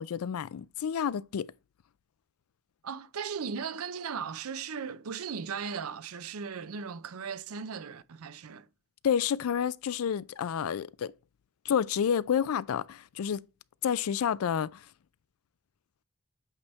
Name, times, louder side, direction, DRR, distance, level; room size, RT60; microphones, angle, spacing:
voice 1, 0.0-1.5 9.0-11.1 11.7-13.5 13.8-14.8, left 8 dB, 85° left, 0.4 m, -29 dB
voice 2, 2.8-8.7, right 6 dB, 90° right, 0.6 m, -37 dB
8.2 x 3.5 x 3.9 m
head